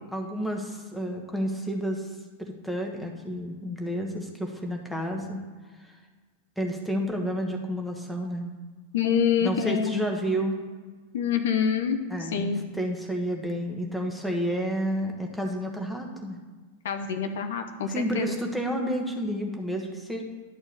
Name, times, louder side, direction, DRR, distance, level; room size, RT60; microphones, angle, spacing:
voice 1, 0.1-2.1 2.4-5.4 5.8-5.9 6.6-8.5 9.4-10.6 12.1-16.4 17.9-20.2, equal, ahead, 1 dB, 1.3 m, -30 dB
voice 2, 8.9-10.1 11.1-12.6 16.8-18.3, left 7 dB, 60° left, 7 dB, 0.7 m, -26 dB
11.0 x 4.4 x 6.6 m, 1.4 s
figure-of-eight pair, 90°, 0 cm